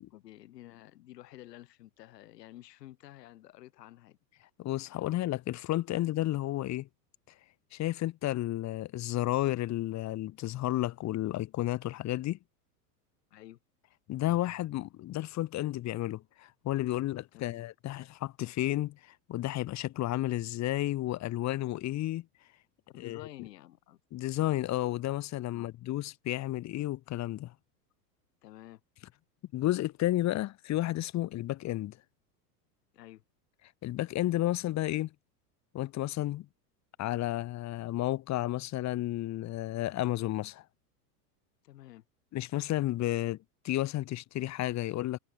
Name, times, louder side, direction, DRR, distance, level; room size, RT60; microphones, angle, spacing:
voice 1, 0.1-4.2 4.7-5.0 13.3-13.6 17.3-17.6 22.9-24.0 25.5-25.7 28.4-28.8 32.9-33.2 41.6-42.0, left 15 dB, 75° left, 7.3 m, -51 dB
voice 2, 4.6-6.9 7.7-12.4 14.1-22.2 23.0-23.3 24.1-27.5 29.5-32.0 33.8-35.1 35.7-36.5 37.0-40.6 42.3-43.4 43.6-45.2, left 15 dB, 35° left, 1.5 m, -32 dB
hypercardioid pair, 115°, 49 cm